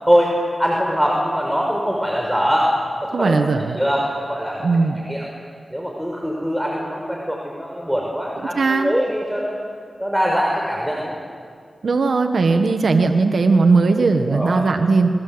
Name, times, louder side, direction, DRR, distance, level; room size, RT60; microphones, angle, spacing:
voice 1, 0.6-2.7 3.0-3.4 3.8-5.3 5.7-9.6 10.0-11.1 14.3-14.6, equal, 5° right, -2 dB, 5.6 m, -22 dB
voice 2, 3.1-3.8 4.6-5.0 8.5-8.9 11.8-15.1, right 4 dB, 75° right, 6 dB, 1.5 m, -18 dB
29.0 x 23.0 x 8.0 m, 2.1 s
cardioid pair, 50°, 0 cm